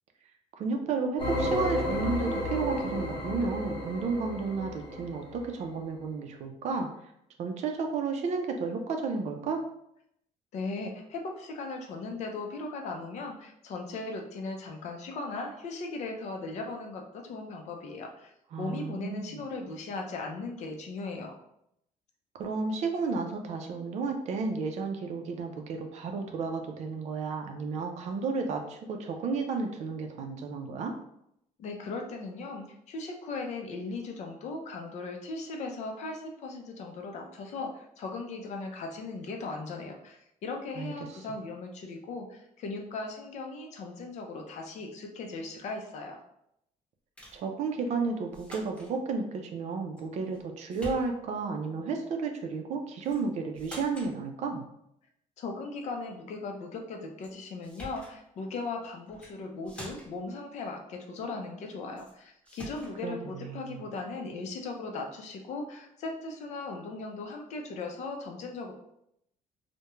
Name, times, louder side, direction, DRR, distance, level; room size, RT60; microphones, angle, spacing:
voice 1, 0.6-6.9 7.4-9.6 18.5-19.4 22.4-30.9 40.8-40.9 47.3-54.6 63.0-63.8, right 4 dB, 55° right, 4 dB, 0.4 m, -32 dB
sound 1, 1.2-5.5, left 1 dB, 35° left, 0.9 m, -32 dB
voice 2, 10.5-18.3 18.6-21.3 31.6-46.2 55.4-68.7, left 3 dB, 55° left, 3 dB, 0.5 m, -38 dB
sound 2, 47.2-47.4 48.3-48.9 50.0-50.4 50.7-51.4 53.0-53.2 53.5-54.1 57.2-57.3 57.6-58.1 59.1-59.3 59.6-60.3 62.0-62.1 62.5-63.0, equal, 10° left, 0.9 m, -45 dB
2.3 x 2.1 x 3.0 m, 0.76 s
cardioid pair, 135°, 14 cm